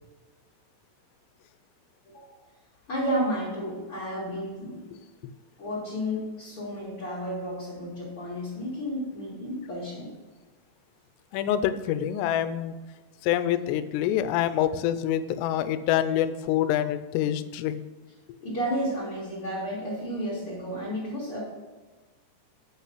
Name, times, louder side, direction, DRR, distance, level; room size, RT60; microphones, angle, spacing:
voice 1, 2.9-4.8 5.6-10.1 18.4-21.4, equal, 40° left, -6 dB, 2.5 m, -32 dB
voice 2, 11.3-12.7 13.2-17.8, left 11 dB, 85° left, 12 dB, 2.8 m, -26 dB
8.4 x 5.6 x 6.1 m, 1.3 s
omnidirectional pair, 4.8 m